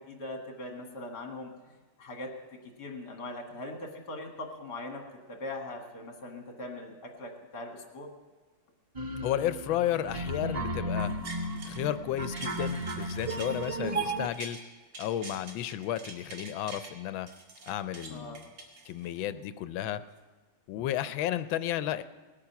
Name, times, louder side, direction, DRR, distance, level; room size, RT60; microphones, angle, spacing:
voice 1, 0.0-1.5 2.0-2.3 2.8-5.0 5.3-8.1 18.1-18.4, left 2 dB, 60° left, 2 dB, 2.4 m, -40 dB
sound 1, 8.9-14.3, right 1 dB, 55° right, 0.4 m, -34 dB
voice 2, 9.2-11.1 11.6-14.6 15.0-17.3 17.7-18.5 18.9-20.0 20.7-22.0, left 12 dB, 85° left, 13 dB, 1.4 m, -32 dB
sound 2, 11.0-11.9 12.2-14.6 14.9-16.9 17.3-19.3 19.7-19.8, right 3 dB, 80° right, 2.8 m, -45 dB
19.5 x 8.9 x 5.8 m, 1.3 s
omnidirectional pair, 2.1 m